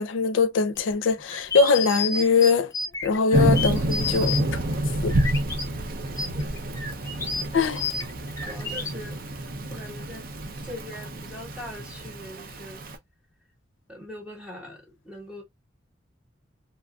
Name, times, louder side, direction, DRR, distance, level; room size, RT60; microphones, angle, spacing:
voice 1, 0.0-2.7 3.0-4.6 5.0-5.1 7.5-7.8, left 5 dB, 80° left, 0.5 m, -22 dB
sound 1, 0.7-5.6 6.1-8.9, left 4 dB, 15° left, 0.7 m, -31 dB
Thunder / Rain, 3.3-13.0, right 1 dB, 50° right, 0.5 m, -28 dB
voice 2, 6.3-6.7 7.5-7.7 8.2-10.3 10.6-12.8 13.9-15.4, left 1 dB, 5° right, 1.2 m, -42 dB
3.0 x 2.5 x 2.2 m
head